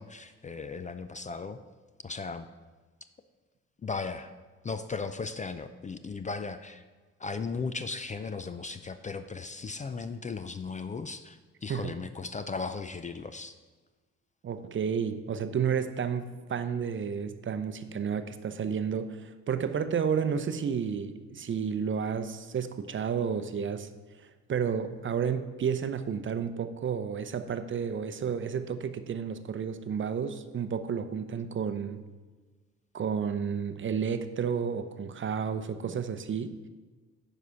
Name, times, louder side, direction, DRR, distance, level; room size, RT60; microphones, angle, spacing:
voice 1, 0.0-1.6 2.0-2.5 3.8-4.3 4.6-6.8 7.2-13.5, left 4 dB, 25° left, 10 dB, 0.4 m, -36 dB
voice 2, 14.4-23.9 24.5-32.0 32.9-36.6, right 7 dB, 40° right, 10 dB, 0.6 m, -31 dB
9.3 x 5.0 x 5.7 m, 1.3 s
cardioid pair, 90°, 30 cm